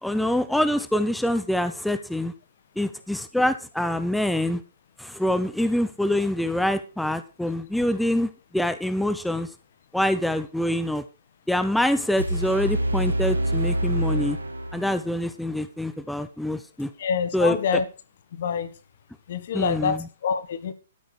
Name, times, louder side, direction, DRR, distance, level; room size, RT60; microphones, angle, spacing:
voice 1, 0.0-2.3 2.8-4.6 5.0-9.5 9.9-11.0 11.5-14.4 14.7-16.9 17.3-17.8 19.5-20.0, left 1 dB, ahead, 11 dB, 0.8 m, -25 dB
sound 1, 12.2-15.2, right 1 dB, 85° right, 1.9 m, -26 dB
voice 2, 17.0-17.8 18.4-18.7 19.3-20.7, left 6 dB, 55° left, 13 dB, 1.5 m, -26 dB
13.0 x 9.1 x 4.9 m, 0.33 s
figure-of-eight pair, 120°, 0 cm